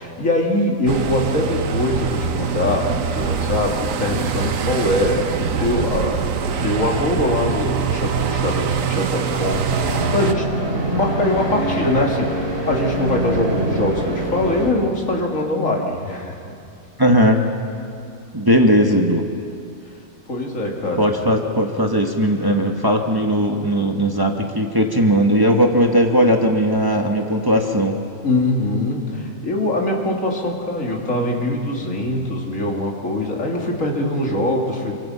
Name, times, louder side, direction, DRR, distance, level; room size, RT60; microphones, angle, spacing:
voice 1, 0.0-10.5 10.9-12.4 12.7-16.5 20.3-21.1 28.2-34.9, left 1 dB, 75° left, 0 dB, 3.1 m, -22 dB
sound 1, 0.9-10.3, right 6 dB, 85° right, 1.4 m, -24 dB
sound 2, 9.7-14.7, right 1 dB, 50° right, 4.0 m, -24 dB
voice 2, 17.0-17.4 18.3-19.3 21.0-28.0, equal, 15° right, 2 dB, 1.4 m, -18 dB
28.0 x 24.0 x 5.7 m, 2.4 s
omnidirectional pair, 1.4 m